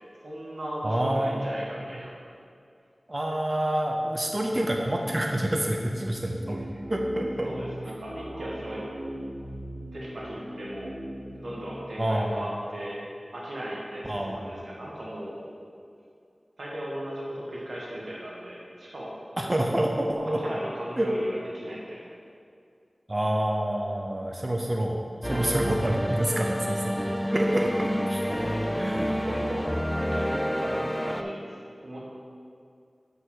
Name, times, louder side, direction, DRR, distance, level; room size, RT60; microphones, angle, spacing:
voice 1, 0.2-2.1 7.4-8.8 9.9-10.9 11.3-13.0 13.3-15.4 16.6-19.1 20.2-22.1 28.3-28.9 29.2-29.8 30.1-32.0, equal, 85° right, -5 dB, 1.7 m, -37 dB
voice 2, 0.8-1.6 3.1-6.6 6.9-7.5 12.0-12.4 14.1-14.5 19.4-20.4 21.0-21.1 23.1-27.0 27.3-28.2 28.8-29.1, right 1 dB, 30° right, 1 dB, 0.7 m, -27 dB
sound 1, 5.7-12.9, right 1 dB, 70° right, 1.3 m, -40 dB
sound 2, 25.2-31.2, equal, 5° left, 0.4 m, -29 dB
5.9 x 5.3 x 6.4 m, 2.4 s
wide cardioid pair, 45°, 0 cm